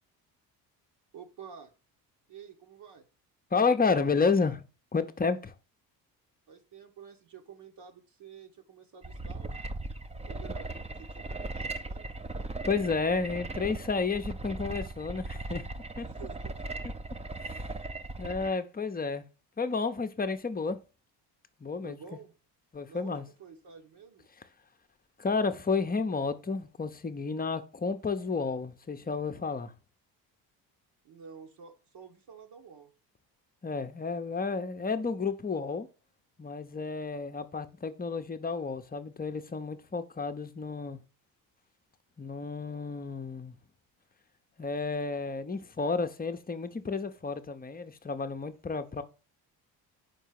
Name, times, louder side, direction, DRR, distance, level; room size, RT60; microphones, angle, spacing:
voice 1, 1.1-1.7 2.3-3.1 6.5-9.6 10.3-12.1 16.0-16.7 17.3-17.4 21.8-22.3 22.9-24.3 31.0-32.9, right 6 dB, 55° right, 1.4 m, -50 dB
voice 2, 3.5-4.6 4.9-5.5 12.7-15.6 16.0-16.1 17.4-17.5 18.2-19.3 19.6-20.8 21.6-22.0 22.7-23.3 25.2-29.7 33.6-35.9 36.4-41.0 42.2-43.5 44.6-49.0, left 4 dB, 20° left, 0.9 m, -31 dB
sound 1, 9.0-18.5, right 2 dB, 15° right, 0.8 m, -38 dB
5.5 x 4.6 x 5.8 m
hypercardioid pair, 60°, 48 cm